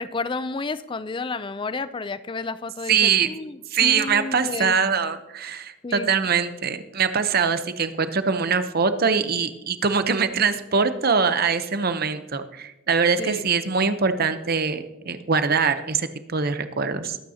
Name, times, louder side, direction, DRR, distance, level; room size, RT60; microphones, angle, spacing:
voice 1, 0.0-4.8 5.8-6.1 13.2-13.5, left 3 dB, 25° left, 14 dB, 0.4 m, -31 dB
voice 2, 2.9-3.3 3.7-17.2, right 5 dB, 50° right, 10 dB, 0.8 m, -23 dB
22.0 x 9.1 x 2.8 m, 0.98 s
head